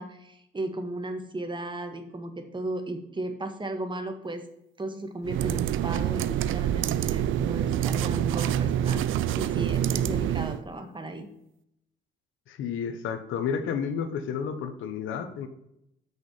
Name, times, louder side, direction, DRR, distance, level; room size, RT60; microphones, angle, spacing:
voice 1, 0.0-4.4 4.8-9.0 9.3-11.3, right 2 dB, 25° right, 6 dB, 1.7 m, -35 dB
sound 1, 5.2-10.6, right 11 dB, 80° right, 0.5 m, -26 dB
voice 2, 12.5-15.5, left 7 dB, 85° left, 8 dB, 1.3 m, -31 dB
8.1 x 6.4 x 7.4 m, 0.79 s
cardioid pair, 90°, 20 cm